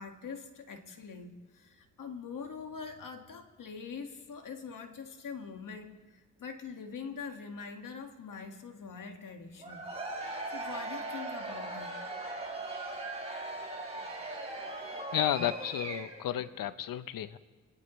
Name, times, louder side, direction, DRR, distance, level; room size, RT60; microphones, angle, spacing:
voice 1, 0.0-9.9 10.5-11.9, left 5 dB, 70° left, 5 dB, 1.8 m, -44 dB
Cheering / Crowd, 9.6-16.3, right 2 dB, 20° right, 4.4 m, -39 dB
voice 2, 15.1-17.4, left 11 dB, 90° left, 14 dB, 0.7 m, -32 dB
25.5 x 18.0 x 3.1 m, 1.3 s
cardioid pair, 60°, 33 cm